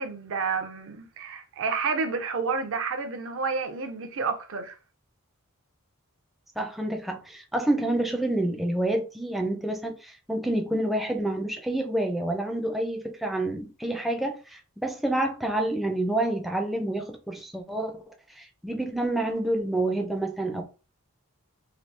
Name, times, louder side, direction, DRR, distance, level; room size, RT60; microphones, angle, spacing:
voice 1, 0.0-4.8, right 5 dB, 65° right, 0.6 m, -30 dB
voice 2, 6.6-17.9 18.4-20.6, right 1 dB, ahead, 0.4 m, -28 dB
2.9 x 2.5 x 3.2 m
head